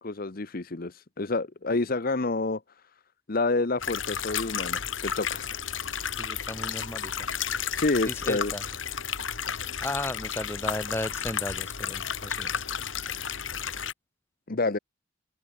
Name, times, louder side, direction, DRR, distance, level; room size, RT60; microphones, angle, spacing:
voice 1, 0.0-2.6 3.3-5.5 7.8-8.5 14.5-14.8, left 3 dB, 45° left, 0.9 m, -28 dB
sound 1, 3.8-13.9, left 7 dB, 75° left, 3.5 m, -32 dB
voice 2, 6.2-7.3 8.1-8.6 9.8-12.6, left 1 dB, 10° left, 1.8 m, -35 dB
open air
head